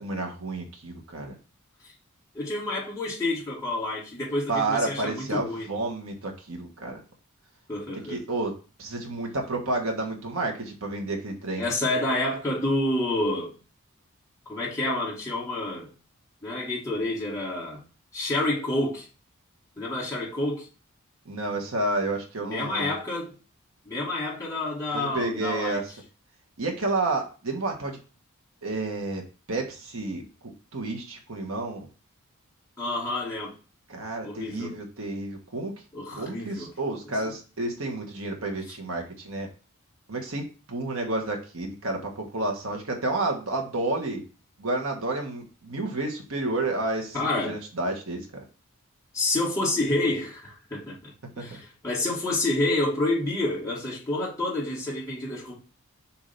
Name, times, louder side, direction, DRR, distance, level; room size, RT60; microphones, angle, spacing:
voice 1, 0.0-1.3 4.5-7.0 8.1-8.5 8.8-11.7 21.2-22.9 24.9-25.9 26.6-28.0 28.6-29.2 29.5-31.9 33.9-35.7 36.2-39.5 40.1-44.2 44.6-48.4 51.5-51.6, right 2 dB, 75° right, 1.4 m, -30 dB
voice 2, 2.3-5.7 7.7-8.2 11.6-13.5 14.5-15.9 16.4-17.8 18.1-19.1 19.8-20.7 22.4-23.3 23.8-25.8 32.8-33.5 34.2-34.8 35.9-36.7 47.1-47.6 49.1-51.1 51.4-55.5, left 2 dB, 15° left, 2.2 m, -28 dB
7.2 x 2.9 x 5.2 m
head